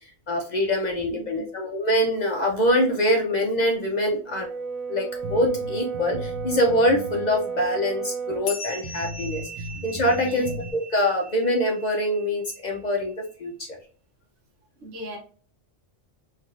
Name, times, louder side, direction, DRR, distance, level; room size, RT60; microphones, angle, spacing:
voice 1, 0.0-4.5 4.9-13.1 13.4-13.7, left 1 dB, 55° left, 0.5 m, -24 dB
voice 2, 1.1-1.4 10.2-10.4 14.8-15.2, equal, 85° right, 1.2 m, -38 dB
Brass instrument, 4.2-8.5, right 6 dB, 50° right, 0.4 m, -32 dB
sound 1, 5.2-7.3 7.6-7.7 8.3-8.4 8.8-10.7, right 1 dB, 70° right, 0.8 m, -36 dB
sound 2, 8.5-13.3, equal, 85° left, 1.0 m, -40 dB
3.3 x 2.7 x 2.3 m
omnidirectional pair, 1.3 m